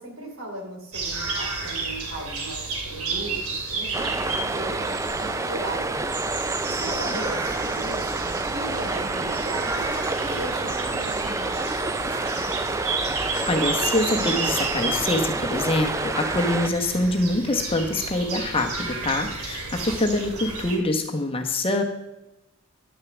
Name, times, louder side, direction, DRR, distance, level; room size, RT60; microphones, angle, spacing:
voice 1, 0.0-5.9 6.8-12.1, right 1 dB, 65° right, 1 dB, 3.2 m, -37 dB
sound 1, 0.9-20.8, right 3 dB, 85° right, 2.7 m, -32 dB
sound 2, 3.9-16.7, right 3 dB, 15° right, 0.4 m, -28 dB
voice 2, 13.4-21.8, left 2 dB, 25° left, 4 dB, 1.0 m, -25 dB
10.5 x 6.6 x 7.1 m, 0.95 s
head